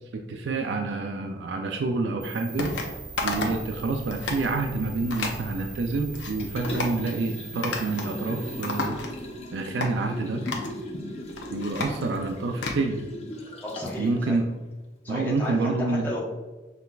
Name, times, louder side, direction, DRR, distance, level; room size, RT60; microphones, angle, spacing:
voice 1, 0.1-2.8 3.2-9.0 9.5-10.4 11.5-13.0 14.0-14.5 15.1-16.1, right 3 dB, 80° right, 4 dB, 0.4 m, -28 dB
sound 1, 2.2-8.9, right 4 dB, 25° right, 0.8 m, -42 dB
sound 2, 2.6-2.9 3.2-3.7 4.0-4.5 5.1-5.4 5.9-6.3 6.6-7.0 7.6-8.1 8.4-9.4 9.8-9.9 10.4-10.7 11.2-12.8, left 3 dB, 90° left, 0.8 m, -32 dB
Liquid, 6.4-14.1 14.5-14.6, left 1 dB, 35° left, 0.6 m, -38 dB
voice 2, 13.6-14.4 15.0-16.2, left 1 dB, 10° left, -7 dB, 1.1 m, -33 dB
5.8 x 3.3 x 2.4 m, 1.2 s
head